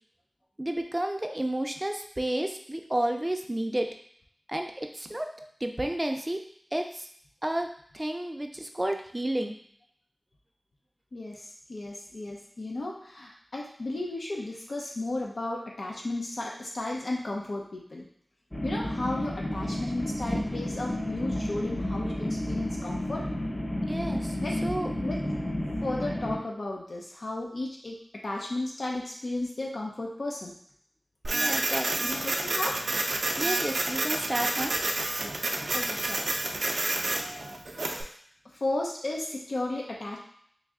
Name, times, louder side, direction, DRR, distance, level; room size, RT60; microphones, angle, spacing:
voice 1, 0.6-3.9 4.5-5.3 5.6-6.4 6.7-7.1 7.4-9.5 23.9-24.9 31.3-32.1 33.4-34.7, right 1 dB, 20° right, 4 dB, 0.4 m, -31 dB
voice 2, 11.1-18.1 18.6-23.3 24.4-24.6 25.0-25.2 25.8-28.0 28.2-30.5 32.0-32.8 35.7-36.2 37.0-37.4 37.9-38.0 38.6-40.2, left 2 dB, 80° left, -2 dB, 0.5 m, -34 dB
sound 1, 18.5-26.4, left 1 dB, 25° left, 0.7 m, -31 dB
Printer, 31.2-38.0, right 2 dB, 85° right, 0.4 m, -29 dB
3.2 x 2.6 x 3.6 m, 0.63 s
wide cardioid pair, 70°, 0 cm